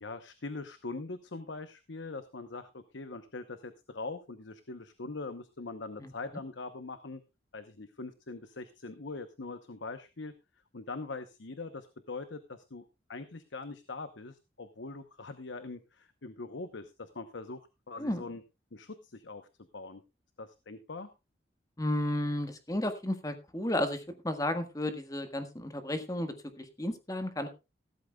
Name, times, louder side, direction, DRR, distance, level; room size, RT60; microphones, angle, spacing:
voice 1, 0.0-7.2 7.5-10.3 10.7-17.6 17.9-18.4 18.7-19.4 19.7-20.0 20.4-21.1, left 3 dB, 85° left, 10 dB, 0.9 m, -42 dB
voice 2, 21.8-27.5, left 1 dB, 20° left, 8 dB, 1.5 m, -33 dB
15.5 x 13.0 x 2.3 m, 0.26 s
head